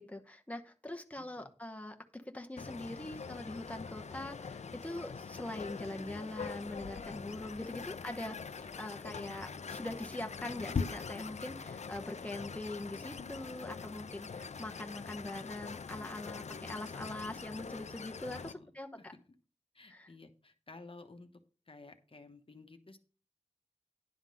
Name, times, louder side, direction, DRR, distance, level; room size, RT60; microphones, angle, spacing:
voice 1, 0.0-19.1 19.9-20.1, left 1 dB, 10° left, 4 dB, 0.9 m, -43 dB
voice 2, 1.2-1.5 7.6-7.8 18.3-18.7 19.0-19.2 19.7-23.0, left 3 dB, 50° left, 6 dB, 1.0 m, -54 dB
sound 1, 2.6-18.5, left 5 dB, 80° left, 0.5 m, -43 dB
10.5 x 3.7 x 7.5 m, 0.38 s
wide cardioid pair, 65°, 11 cm